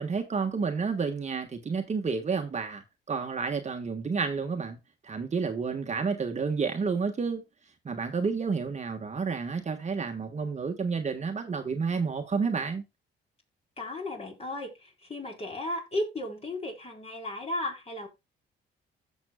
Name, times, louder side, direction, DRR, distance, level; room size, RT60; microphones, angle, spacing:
voice 1, 0.0-2.8 3.1-4.8 5.1-7.4 7.8-12.8, right 5 dB, 35° right, 1.4 m, -30 dB
voice 2, 13.8-18.1, left 1 dB, 30° left, 3.9 m, -35 dB
15.0 x 6.2 x 2.2 m
cardioid pair, 90°, 20 cm